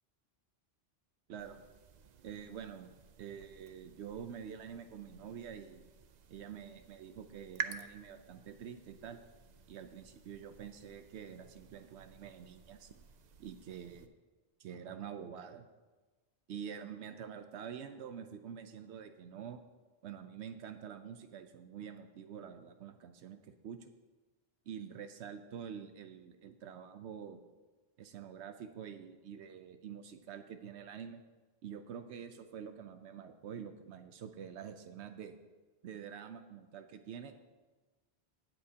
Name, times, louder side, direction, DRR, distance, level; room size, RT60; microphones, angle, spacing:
voice 1, 1.3-1.6 2.2-2.9 3.2-5.8 6.3-9.2 9.7-12.9 13.4-14.1 14.6-15.7 16.5-19.6 20.0-23.9 24.7-27.4 28.0-31.2 31.6-35.4 35.8-37.4, right 8 dB, 85° right, 8 dB, 0.9 m, -47 dB
sound 1, 1.4-14.1, right 7 dB, 55° right, 0.5 m, -50 dB
18.5 x 7.3 x 2.8 m, 1.3 s
omnidirectional pair, 1.1 m